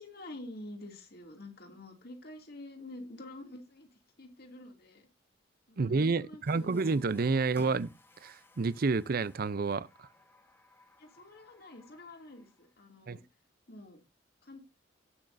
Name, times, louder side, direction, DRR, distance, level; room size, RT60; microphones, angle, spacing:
voice 1, 0.0-3.9 4.2-5.1 5.7-6.8 11.0-13.2 13.7-14.0 14.4-14.6, left 1 dB, 55° left, 2.5 m, -48 dB
voice 2, 5.8-7.9 8.2-9.9 13.1-13.2, right 4 dB, 50° right, 0.5 m, -29 dB
Water tap faucet, 6.5-12.8, left 2 dB, 10° left, 1.2 m, -59 dB
18.0 x 6.3 x 2.6 m
head